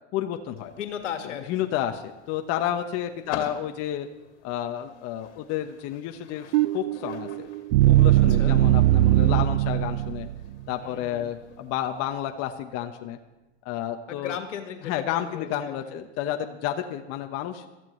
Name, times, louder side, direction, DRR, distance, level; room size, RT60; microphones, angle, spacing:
voice 1, 0.1-0.7 1.5-4.1 4.4-7.5 7.9-10.3 10.7-13.2 13.6-14.4 14.8-17.6, left 11 dB, 45° left, 6 dB, 1.1 m, -31 dB
sound 1, 0.6-12.0, left 8 dB, 70° left, 2.5 m, -46 dB
voice 2, 0.8-1.7 3.2-3.4 8.2-8.6 10.8-11.3 14.1-15.8, left 8 dB, 90° left, 6 dB, 1.9 m, -36 dB
sound 2, 6.5-10.6, right 15 dB, 70° right, 0.5 m, -20 dB
22.5 x 14.0 x 3.2 m, 1.1 s
hypercardioid pair, 115°, 35 cm